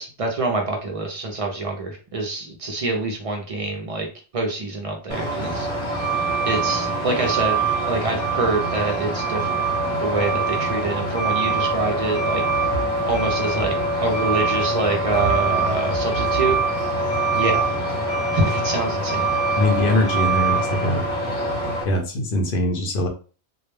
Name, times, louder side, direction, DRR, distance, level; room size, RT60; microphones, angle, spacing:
voice 1, 0.0-4.1 4.3-5.7 6.4-9.7 10.0-12.4 13.1-13.7 14.0-16.6 17.3-17.7 18.3-19.3, right 2 dB, 55° right, 1 dB, 0.4 m, -25 dB
Truck, 5.1-21.8, right 3 dB, 30° right, 0.8 m, -23 dB
voice 2, 19.6-21.0 21.8-23.1, left 1 dB, 60° left, 4 dB, 0.7 m, -22 dB
2.2 x 2.1 x 3.0 m, 0.37 s
omnidirectional pair, 1.2 m